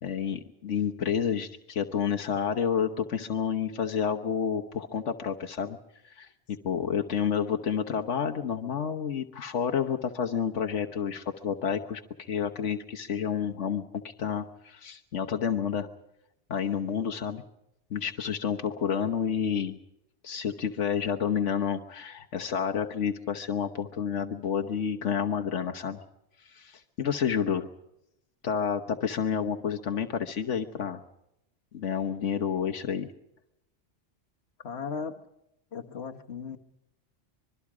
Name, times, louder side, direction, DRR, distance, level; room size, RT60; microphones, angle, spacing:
voice 1, 0.0-5.8 6.0-6.3 6.6-15.9 16.5-17.4 17.9-19.8 20.2-26.0 26.4-27.7 28.4-31.0 31.7-33.1, left 7 dB, 80° left, 4 dB, 1.4 m, -30 dB
voice 2, 34.6-35.2 35.7-36.6, left 5 dB, 65° left, 4 dB, 1.6 m, -36 dB
25.5 x 22.5 x 4.9 m, 0.84 s
omnidirectional pair, 1.2 m